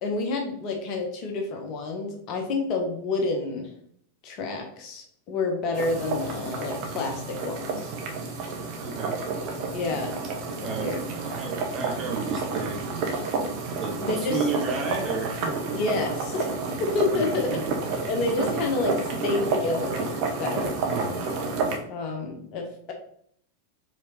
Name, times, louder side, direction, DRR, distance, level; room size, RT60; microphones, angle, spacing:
voice 1, 0.0-3.7 4.2-7.9 9.7-10.2 10.6-11.0 14.0-14.4 15.7-16.5 16.8-17.6 18.1-20.1 20.4-20.8 21.9-22.9, left 3 dB, 40° left, 3 dB, 0.9 m, -29 dB
sound 1, 5.7-21.8, right 4 dB, 45° right, 1.0 m, -30 dB
voice 2, 8.8-9.2 10.6-12.8 13.8-15.5 17.1-17.3 17.5-17.6 20.9-21.3, right 4 dB, 25° right, -1 dB, 1.4 m, -32 dB
4.8 x 3.9 x 2.8 m, 0.64 s
figure-of-eight pair, 90°, 0 cm